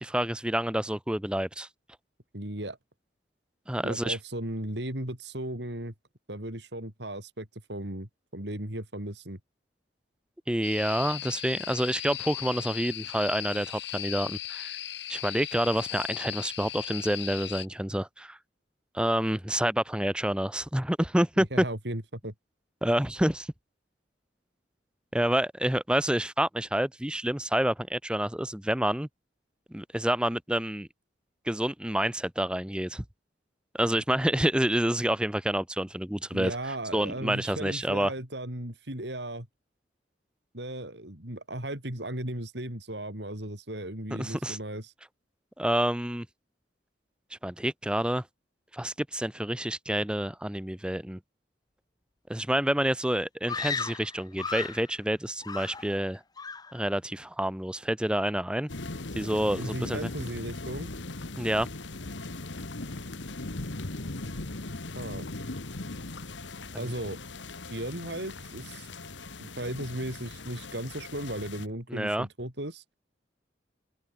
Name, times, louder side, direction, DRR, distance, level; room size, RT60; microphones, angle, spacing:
voice 1, 0.0-1.7 3.7-4.2 10.5-14.7 15.1-18.4 18.9-21.6 22.8-23.5 25.1-29.1 29.7-30.9 31.5-33.0 33.7-36.5 36.9-38.1 44.2-44.6 45.6-46.3 47.4-48.2 48.7-51.2 52.3-56.2 56.7-58.7 59.2-60.0 61.4-61.7 66.7-66.9 71.9-72.3, right 1 dB, 5° right, 0.8 m, -28 dB
voice 2, 2.3-2.8 3.8-5.9 6.3-9.4 21.5-22.3 36.3-39.5 40.5-44.9 59.6-60.9 64.9-65.3 66.7-67.2 67.7-68.9 69.4-72.8, right 1 dB, 70° right, 6.0 m, -36 dB
sound 1, 10.6-17.7, left 13 dB, 70° left, 5.8 m, -37 dB
Screaming, 53.5-54.9 55.4-56.1 56.4-56.8, left 5 dB, 20° left, 0.9 m, -35 dB
sound 2, 58.7-71.7, left 2 dB, 90° left, 1.8 m, -39 dB
head